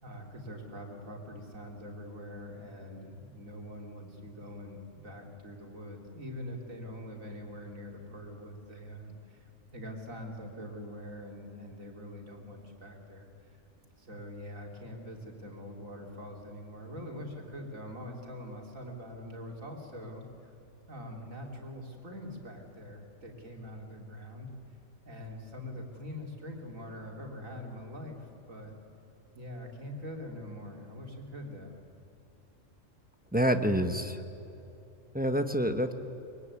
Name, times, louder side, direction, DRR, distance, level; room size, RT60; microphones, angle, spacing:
voice 1, 0.0-13.6 14.0-20.5 20.9-24.5 25.1-28.8 29.3-31.8, left 1 dB, 85° right, 1 dB, 3.6 m, -44 dB
voice 2, 33.3-34.2 35.1-35.9, equal, 5° right, 7 dB, 1.1 m, -27 dB
24.0 x 22.0 x 9.7 m, 2.9 s
omnidirectional pair, 1.4 m